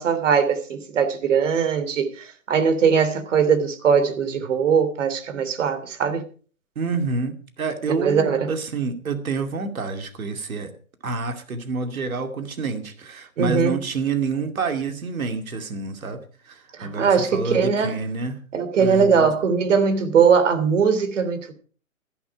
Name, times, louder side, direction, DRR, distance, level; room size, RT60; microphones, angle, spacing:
voice 1, 0.0-2.1 2.5-6.2 8.0-8.5 13.4-13.8 16.8-18.0 18.5-21.5, right 6 dB, 60° right, 3.0 m, -20 dB
voice 2, 6.8-10.7 11.0-16.2 16.8-18.4 18.8-19.3, right 4 dB, 80° right, 2.5 m, -28 dB
13.5 x 12.0 x 4.9 m
hypercardioid pair, 135°, 41 cm